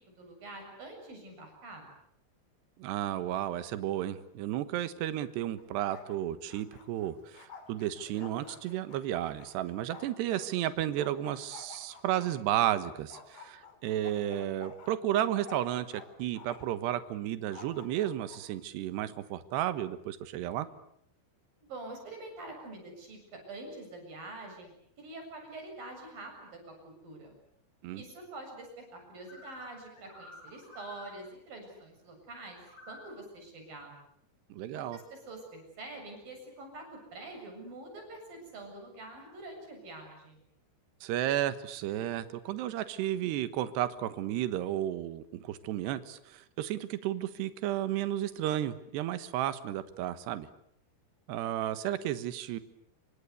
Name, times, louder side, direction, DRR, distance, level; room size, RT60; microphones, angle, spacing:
voice 1, 0.0-1.8 21.6-27.3 27.9-32.6 32.9-33.9 34.7-36.8 37.1-40.4, right 2 dB, 50° right, 3 dB, 9.2 m, -46 dB
voice 2, 2.8-20.7 27.8-28.0 34.5-35.0 41.0-50.5 51.3-52.6, right 12 dB, 75° right, 13 dB, 3.4 m, -33 dB
Bark, 5.6-6.2 6.4-10.5 11.0-12.8 13.1-16.1 16.3-16.8 17.5-18.4, left 5 dB, 60° left, 4.5 m, -50 dB
sound 1, 29.3-31.2 32.6-33.2, left 2 dB, 25° left, 7.4 m, -51 dB
28.0 x 25.0 x 8.3 m, 0.69 s
omnidirectional pair, 5.0 m